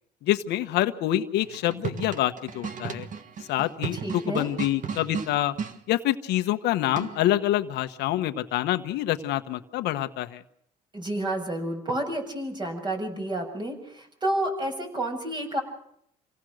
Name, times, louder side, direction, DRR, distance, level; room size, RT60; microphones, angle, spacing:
voice 1, 0.2-3.1 3.5-5.5 5.9-10.4, left 13 dB, 80° left, 8 dB, 1.3 m, -26 dB
sound 1, 1.4-5.8 7.0-7.4, right 6 dB, 50° right, 1.8 m, -35 dB
voice 2, 4.0-4.5 10.9-15.6, right 1 dB, 25° right, 4 dB, 7.0 m, -30 dB
27.5 x 17.5 x 6.5 m, 0.72 s
cardioid pair, 110°, 17 cm